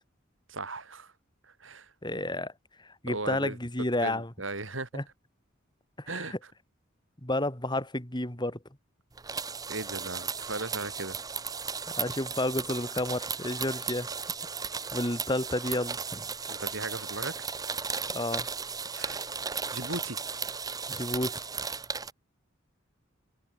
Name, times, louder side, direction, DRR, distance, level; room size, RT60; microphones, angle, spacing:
voice 1, 0.5-1.1 1.4-1.9 3.1-3.6 4.0-5.0 6.1-6.3 9.7-11.2 16.5-17.5 18.9-19.2 19.7-20.2, right 2 dB, 75° right, 6.8 m, -37 dB
voice 2, 2.0-2.5 2.8-4.3 4.9-5.0 6.0-6.4 7.2-8.6 11.9-14.1 14.9-16.3 18.1-18.5 20.9-21.5, left 1 dB, 20° left, 3.8 m, -31 dB
sound 1, 9.2-22.1, right 5 dB, 20° right, 0.9 m, -35 dB
head